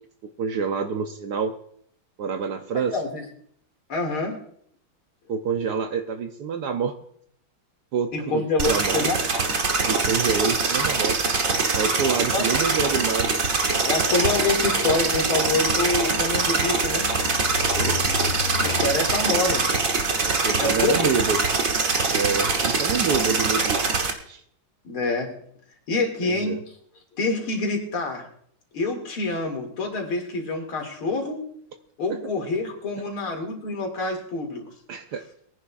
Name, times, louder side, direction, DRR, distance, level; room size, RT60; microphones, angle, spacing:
voice 1, 0.2-1.6 2.2-2.9 5.3-7.0 7.9-9.1 9.9-11.2 11.8-13.3 17.8-18.0 20.2-21.4 22.1-23.8 24.3-24.4 26.2-26.6 32.1-32.2 34.9-35.2, right 6 dB, 65° right, 7 dB, 1.1 m, -27 dB
voice 2, 3.9-4.4 8.1-9.2 12.3-12.5 13.8-17.1 18.6-19.7 20.6-21.1 24.8-25.3 25.9-26.6 27.2-28.2 28.7-31.4 32.0-34.6, left 3 dB, 85° left, 2 dB, 3.1 m, -26 dB
sound 1, 8.6-24.1, right 4 dB, 45° right, 1.4 m, -23 dB
sound 2, 14.4-21.3, left 8 dB, 70° left, 1.6 m, -37 dB
22.5 x 10.0 x 2.4 m, 0.65 s
omnidirectional pair, 2.3 m